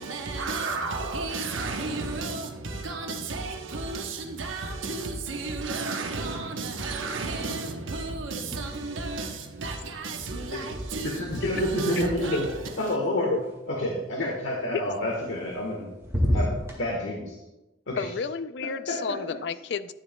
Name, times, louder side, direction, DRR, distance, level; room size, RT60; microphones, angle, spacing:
voice 1, 0.0-13.0, right 3 dB, 90° right, 1.0 m, -33 dB
sound 1, 8.4-9.1 9.4-13.5 15.1-15.7 16.0-16.8, left 1 dB, 15° right, 1.7 m, -32 dB
voice 2, 11.0-12.5 12.8-13.4 13.7-15.9 16.3-17.4 17.9-18.1 18.9-19.2, left 1 dB, 85° left, 1.3 m, -29 dB
voice 3, 17.9-19.9, left 5 dB, 60° left, 0.4 m, -31 dB
10.5 x 9.9 x 2.2 m
head